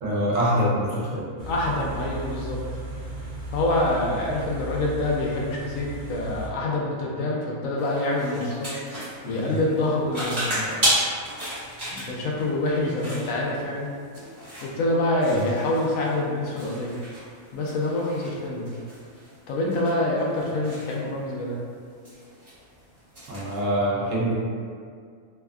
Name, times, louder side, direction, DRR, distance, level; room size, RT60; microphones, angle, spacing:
voice 1, 0.0-1.3 9.3-9.6 15.3-15.4 23.3-24.3, equal, 70° right, -6 dB, 1.0 m, -25 dB
Car / Idling, 1.4-6.5, right 1 dB, 55° right, 0.5 m, -35 dB
voice 2, 1.5-2.6 3.5-8.7 9.0-10.9 11.9-13.9 14.6-17.0 17.5-18.7 19.5-21.6, left 2 dB, 75° left, -2 dB, 0.9 m, -26 dB
sound 1, 7.8-23.6, right 1 dB, 30° right, 1.1 m, -34 dB
3.3 x 2.1 x 2.3 m, 2.1 s
omnidirectional pair, 1.4 m